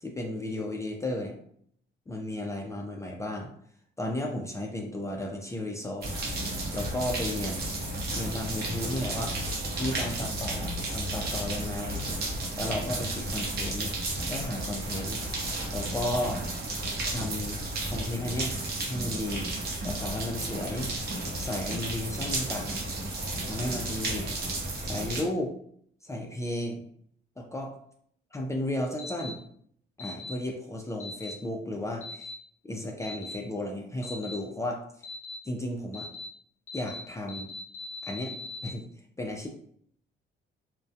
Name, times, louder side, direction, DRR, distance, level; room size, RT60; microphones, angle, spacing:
voice 1, 0.0-1.3 2.1-3.5 4.0-6.1 6.7-7.7 8.1-9.4 9.8-12.1 12.6-13.9 14.3-15.2 15.7-16.4 17.0-17.6 17.9-18.5 18.9-19.5 19.8-20.9 21.4-22.8 23.4-25.5 26.0-26.9 27.4-27.7 28.3-29.4 30.0-32.3 32.6-34.8 35.5-36.1 36.7-37.5 38.0-38.3 38.6-38.8 39.2-39.5, left 1 dB, 15° left, 1 dB, 0.3 m, -34 dB
sound 1, 6.0-25.2, right 2 dB, 55° right, 0.7 m, -33 dB
sound 2, 29.0-29.3 30.0-30.3 31.0-31.3 32.0-32.3 33.0-33.3 34.0-34.3 35.0-35.3 35.9-36.2 36.7-37.0 37.3-38.7, left 3 dB, 35° left, 0.7 m, -40 dB
2.2 x 2.1 x 2.6 m, 0.64 s
cardioid pair, 90°, 20 cm